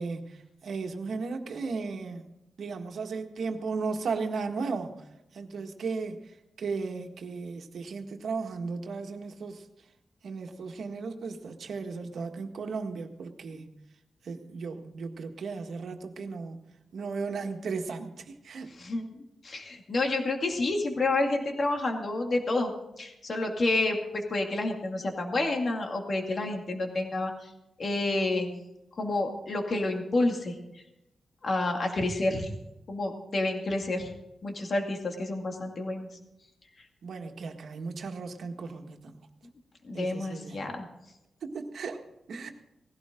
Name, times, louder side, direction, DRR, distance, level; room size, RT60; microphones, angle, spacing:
voice 1, 0.0-2.2 2.6-4.9 5.3-6.2 6.6-9.6 10.2-13.7 14.2-16.6 16.9-18.7 37.0-39.2 39.9-40.6 41.4-42.5, right 4 dB, 70° right, 4 dB, 1.7 m, -35 dB
voice 2, 19.4-22.7 23.0-27.5 27.8-28.5 29.0-30.5 31.4-32.5 32.9-34.1 34.4-36.1 39.8-40.9, left 2 dB, 40° left, 2 dB, 2.4 m, -29 dB
19.0 x 16.0 x 3.8 m, 0.89 s
wide cardioid pair, 150°, 0 cm